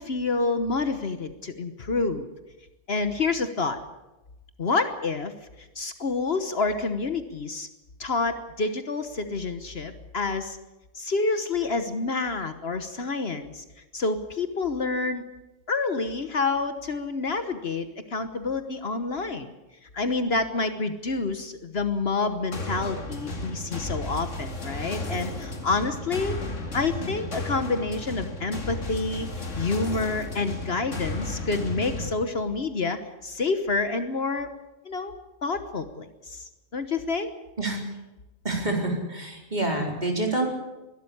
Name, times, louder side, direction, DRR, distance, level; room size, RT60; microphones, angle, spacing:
voice 1, 0.0-2.3 2.9-3.8 4.6-5.3 5.7-7.7 8.0-10.6 10.9-13.6 13.9-15.3 15.7-19.5 19.9-26.4 26.7-29.3 29.6-34.5 34.8-35.1 35.4-37.3, left 3 dB, 55° left, 9 dB, 1.4 m, -28 dB
sound 1, 22.5-32.1, left 1 dB, 75° left, 2.6 m, -34 dB
voice 2, 38.4-40.5, right 2 dB, 35° right, 1 dB, 4.3 m, -27 dB
21.5 x 12.5 x 9.9 m, 1.0 s
omnidirectional pair, 1.3 m